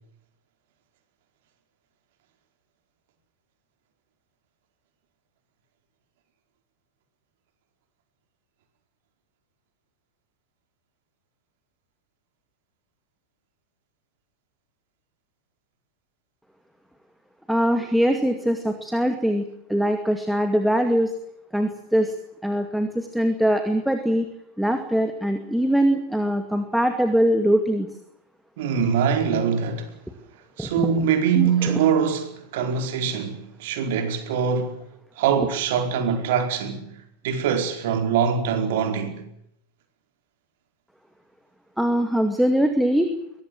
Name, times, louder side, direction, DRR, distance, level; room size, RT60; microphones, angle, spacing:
voice 1, 17.5-19.4 19.7-21.1 21.5-22.1 22.4-24.3 24.6-27.9 30.6-30.7 31.4-31.7 41.8-43.1, equal, ahead, 2.3 m, -22 dB
voice 2, 28.6-29.9 30.6-34.8 35.2-36.9 37.2-39.2, right 7 dB, 50° right, 4.7 m, -23 dB
23.5 x 19.0 x 7.9 m
figure-of-eight pair, 90°, 0 cm